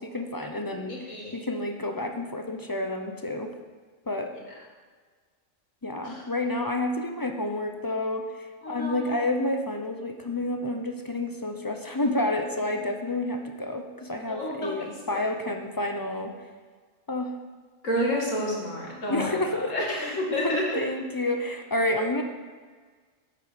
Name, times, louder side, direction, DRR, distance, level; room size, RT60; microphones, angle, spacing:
voice 1, 0.0-3.5 4.1-4.3 5.8-16.3 17.1-17.4 19.1-19.7 20.4-22.2, left 1 dB, 25° left, 4 dB, 0.5 m, -29 dB
voice 2, 0.9-1.4 6.0-6.2 8.6-9.2 14.3-15.3 17.8-20.8, left 1 dB, 75° left, -3 dB, 2.5 m, -30 dB
8.3 x 7.6 x 5.1 m, 1.5 s
omnidirectional pair, 1.3 m